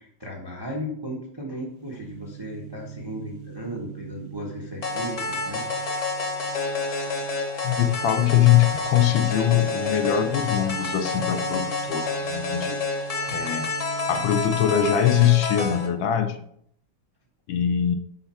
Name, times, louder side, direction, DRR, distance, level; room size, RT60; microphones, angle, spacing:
voice 1, 0.0-5.6, equal, 30° right, -2 dB, 0.4 m, -35 dB
sound 1, 1.6-16.1, right 8 dB, 90° right, 0.8 m, -42 dB
sound 2, 4.8-15.9, left 3 dB, 45° left, 1.2 m, -29 dB
voice 2, 7.6-12.8 13.3-13.7 14.1-16.4 17.5-18.0, left 10 dB, 75° left, 7 dB, 1.2 m, -22 dB
5.7 x 4.5 x 4.2 m, 0.68 s
omnidirectional pair, 2.3 m